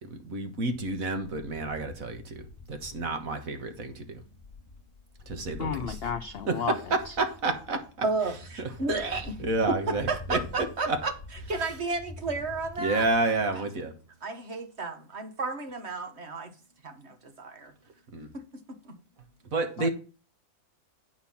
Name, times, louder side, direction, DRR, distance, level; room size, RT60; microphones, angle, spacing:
voice 1, 0.0-4.2 5.3-5.9 6.9-7.8 8.6-8.7 9.4-11.0 12.8-13.9 18.1-18.3 19.5-19.9, right 3 dB, 60° right, 1.9 m, -30 dB
sound 1, 1.1-13.6, left 2 dB, 35° left, 0.9 m, -46 dB
voice 2, 5.6-7.2 19.8-19.9, left 6 dB, 65° left, 0.6 m, -33 dB
voice 3, 8.0-9.4 10.1-11.1 11.5-13.1 13.5-13.6 14.2-16.5 16.8-17.7 18.3-18.4 18.8-19.0, right 3 dB, 45° right, 1.6 m, -32 dB
9.0 x 5.6 x 5.6 m
omnidirectional pair, 1.6 m